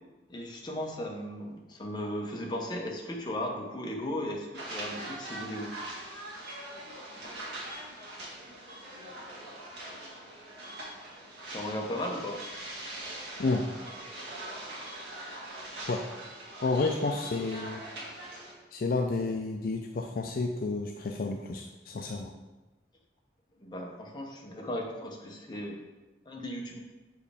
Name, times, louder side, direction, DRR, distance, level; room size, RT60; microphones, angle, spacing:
voice 1, 0.3-5.7 11.5-12.4 23.6-25.8 26.3-26.8, left 1 dB, 25° left, 0 dB, 0.9 m, -36 dB
sound 1, 4.5-18.5, right 1 dB, 80° right, 1.7 m, -42 dB
voice 2, 16.6-17.8 18.7-22.3, left 3 dB, 55° left, 3 dB, 0.4 m, -30 dB
7.1 x 4.6 x 3.4 m, 1.1 s
head